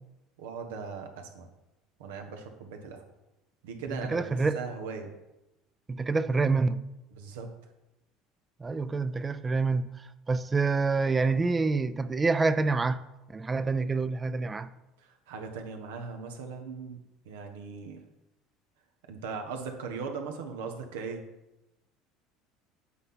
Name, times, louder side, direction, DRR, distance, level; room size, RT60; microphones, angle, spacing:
voice 1, 0.4-1.5 2.0-3.0 3.6-5.1 7.1-7.5 15.0-18.0 19.1-21.2, right 5 dB, 90° right, 1.3 m, -39 dB
voice 2, 4.1-4.6 5.9-6.8 8.6-13.0 13.3-14.7, right 4 dB, 20° right, 0.4 m, -27 dB
8.2 x 4.1 x 5.6 m
supercardioid pair, 100°, 0 cm